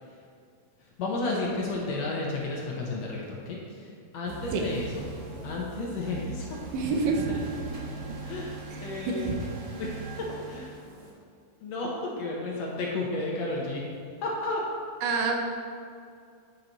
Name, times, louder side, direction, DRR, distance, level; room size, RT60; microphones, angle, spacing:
voice 1, 1.0-3.9 4.1-5.0 5.4-6.6 7.3-7.4 8.2-8.5 8.8-9.3 9.8-10.6 11.6-13.8 14.2-14.6, left 2 dB, 70° left, -3 dB, 1.7 m, -32 dB
sound 1, 4.3-11.1, right 3 dB, 50° right, 1.4 m, -41 dB
voice 2, 6.7-7.3 8.7-9.4 15.0-15.4, right 4 dB, 80° right, 2 dB, 2.4 m, -27 dB
9.2 x 5.7 x 3.9 m, 2.3 s
omnidirectional pair, 3.9 m